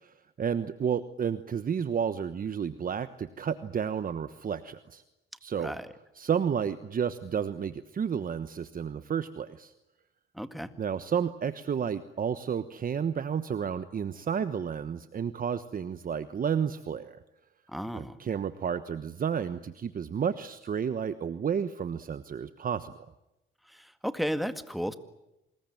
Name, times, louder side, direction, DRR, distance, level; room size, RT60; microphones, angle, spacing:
voice 1, 0.0-5.0 5.4-5.7 6.1-9.7 10.8-17.2 17.9-22.9, right 7 dB, 45° right, 11 dB, 1.2 m, -31 dB
voice 2, 10.4-10.7 17.7-18.2 23.7-24.9, equal, ahead, 10 dB, 1.9 m, -33 dB
26.0 x 21.0 x 9.3 m, 0.93 s
cardioid pair, 90°, 20 cm